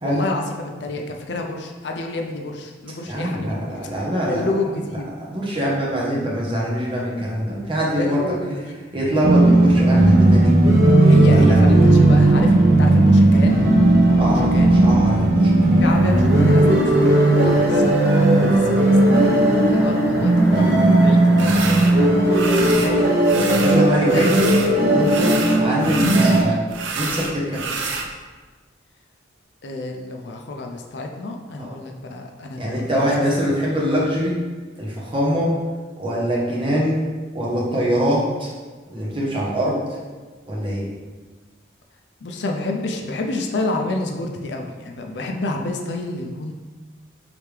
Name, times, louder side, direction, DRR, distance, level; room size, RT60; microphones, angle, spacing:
voice 1, 0.0-5.1 8.0-8.8 11.0-13.6 14.1-14.7 15.8-22.1 22.6-23.1 24.1-24.2 29.6-33.2 42.2-46.5, left 2 dB, 60° left, 2 dB, 0.5 m, -29 dB
voice 2, 3.0-4.4 5.3-8.2 8.9-10.6 11.3-11.6 14.2-15.5 23.6-26.6 26.9-27.6 32.6-34.4 34.8-35.5 36.0-37.0 37.3-38.5 38.9-39.8 40.5-40.9, equal, 25° right, -5 dB, 1.0 m, -23 dB
sound 1, 9.2-26.4, right 1 dB, 55° right, 0.9 m, -15 dB
sound 2, 15.8-23.3, equal, 10° left, 0.5 m, -34 dB
sound 3, 21.4-21.9 22.3-22.9 23.2-24.7 25.0-28.1, right 4 dB, 80° right, 0.5 m, -28 dB
4.8 x 3.4 x 3.2 m, 1.4 s
head